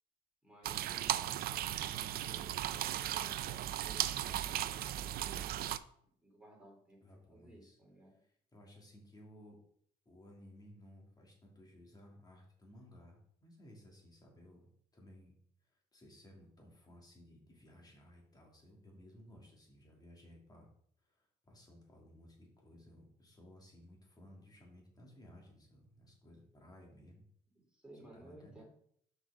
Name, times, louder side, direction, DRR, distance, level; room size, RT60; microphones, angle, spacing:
voice 1, 0.4-5.8 6.2-8.2 27.5-28.6, right 1 dB, 5° right, -2 dB, 3.3 m, -58 dB
sound 1, 0.6-5.8, right 13 dB, 65° right, 0.5 m, -36 dB
voice 2, 7.0-7.8 8.2-9.6 10.0-15.4 15.7-20.7 21.0-27.2 28.1-28.6, left 1 dB, 25° left, -1 dB, 2.7 m, -58 dB
6.1 x 5.6 x 5.0 m, 0.65 s
cardioid pair, 110°, 17 cm